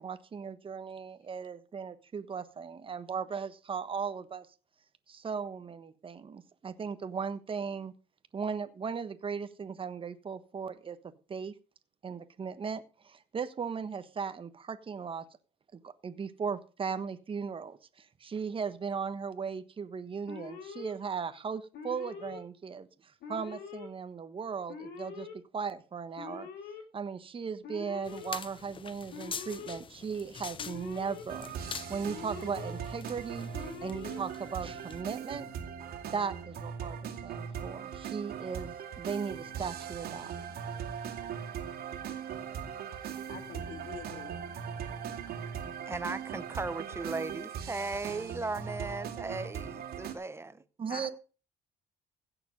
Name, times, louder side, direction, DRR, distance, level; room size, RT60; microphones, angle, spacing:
voice 1, 0.0-4.5 5.1-7.9 8.3-11.5 12.0-15.2 15.7-26.5 26.9-31.5 31.9-35.5 36.1-40.3 50.8-51.1, right 6 dB, 30° right, 1.3 m, -37 dB
Alarm, 20.3-20.9 21.7-22.4 23.2-23.9 24.7-25.3 26.2-26.8 27.6-28.3 29.1-29.8 30.6-31.2 32.1-32.7 33.5-34.2, left 5 dB, 75° left, 3.5 m, -44 dB
sound 1, 28.0-35.0, left 6 dB, 30° left, 0.7 m, -45 dB
sound 2, 31.3-50.1, right 8 dB, 65° right, 2.3 m, -40 dB
voice 2, 43.3-44.4 50.9-51.1, left 7 dB, 55° left, 2.4 m, -45 dB
voice 3, 45.9-50.6, right 3 dB, 15° right, 1.0 m, -37 dB
16.0 x 7.1 x 5.3 m
cardioid pair, 110°, 17 cm